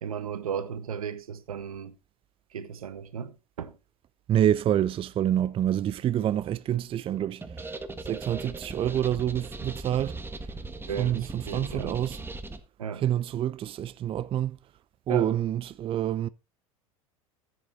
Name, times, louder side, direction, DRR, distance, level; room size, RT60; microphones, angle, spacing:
voice 1, 0.0-1.9 2.5-3.7 10.9-12.0 12.8-13.0 15.1-15.3, right 7 dB, 75° right, 1.5 m, -35 dB
voice 2, 4.3-7.8 8.0-10.2 11.0-12.2 13.0-14.6 15.1-16.3, right 11 dB, 30° right, 0.6 m, -27 dB
sound 1, 7.4-12.6, right 3 dB, 10° right, 1.6 m, -39 dB
14.5 x 7.8 x 4.0 m
figure-of-eight pair, 80°, 18 cm